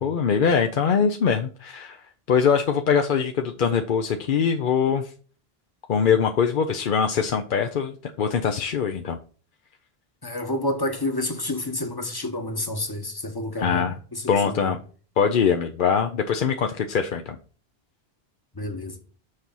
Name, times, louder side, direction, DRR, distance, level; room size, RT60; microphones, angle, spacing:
voice 1, 0.0-5.1 5.9-9.2 13.6-14.0 14.3-14.8 15.2-17.4, left 6 dB, 60° left, 0.7 m, -23 dB
voice 2, 10.2-14.8 18.5-19.0, left 1 dB, 25° left, 1.0 m, -29 dB
6.6 x 4.7 x 5.5 m
omnidirectional pair, 1.0 m